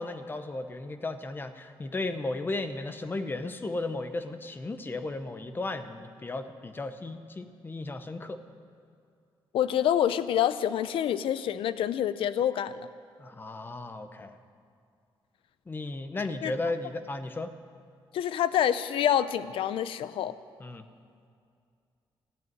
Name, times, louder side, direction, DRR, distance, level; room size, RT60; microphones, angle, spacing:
voice 1, 0.0-8.4 13.2-14.4 15.7-17.5 20.6-20.8, left 2 dB, 25° left, 9 dB, 0.9 m, -35 dB
voice 2, 9.5-12.9 16.4-16.5 18.1-20.3, left 10 dB, 85° left, 15 dB, 0.6 m, -27 dB
15.5 x 9.2 x 9.2 m, 2.3 s
cardioid pair, 125°, 9 cm